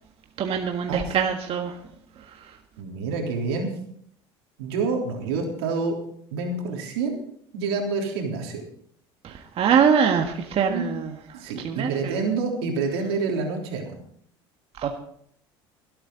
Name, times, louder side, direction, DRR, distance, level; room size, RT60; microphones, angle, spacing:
voice 1, 0.4-1.8 2.1-2.6 9.2-12.2 14.7-14.9, right 7 dB, 50° right, 3 dB, 1.6 m, -24 dB
voice 2, 2.8-3.7 4.6-6.0 6.3-7.2 7.5-8.6 10.7-10.8 11.3-13.9, right 4 dB, 80° right, 1 dB, 3.4 m, -27 dB
23.5 x 8.7 x 3.9 m, 0.65 s
hypercardioid pair, 80°, 13 cm